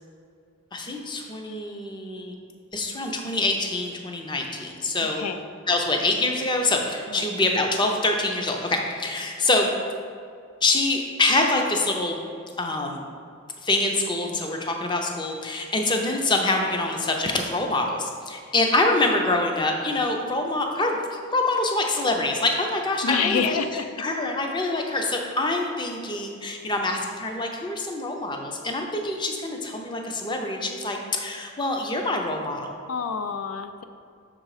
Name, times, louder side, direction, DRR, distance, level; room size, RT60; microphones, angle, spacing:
voice 1, 0.7-2.3 2.7-5.2 5.7-9.7 10.6-12.2 12.6-13.1 13.6-23.6 24.0-32.7, left 2 dB, 20° left, 2 dB, 0.5 m, -25 dB
voice 2, 23.0-23.8 32.9-33.8, left 6 dB, 85° left, 9 dB, 0.4 m, -27 dB
6.3 x 3.8 x 4.8 m, 2.3 s
head